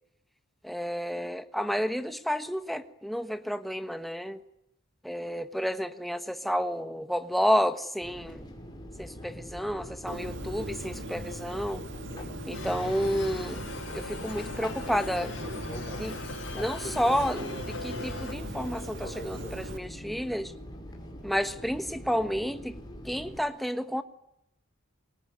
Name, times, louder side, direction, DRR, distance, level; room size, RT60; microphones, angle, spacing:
voice 1, 0.6-4.4 5.0-8.5 9.0-11.8 12.4-13.6 13.9-15.3 16.0-16.2 16.5-20.5 21.2-22.8 23.0-24.0, equal, ahead, 1.3 m, -30 dB
Fixed-wing aircraft airplane, 8.0-23.4, equal, 20° left, 5.8 m, -42 dB
Bird, 10.1-19.8, right 1 dB, 55° right, 2.1 m, -40 dB
sound 1, 12.5-18.3, left 3 dB, 60° left, 7.8 m, -41 dB
27.0 x 23.0 x 9.6 m
head